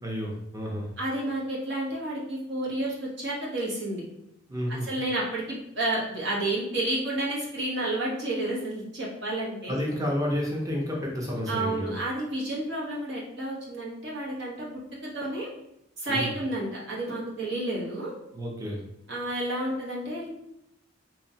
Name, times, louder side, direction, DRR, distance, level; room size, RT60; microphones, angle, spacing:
voice 1, 0.0-0.9 4.5-4.9 9.7-11.9 16.1-16.3 18.3-18.8, equal, 20° right, -2 dB, 0.7 m, -30 dB
voice 2, 1.0-4.0 4.8-9.8 11.5-15.5 16.0-18.1 19.1-20.3, right 1 dB, 65° right, -4 dB, 1.1 m, -31 dB
3.6 x 3.0 x 2.8 m, 0.82 s
head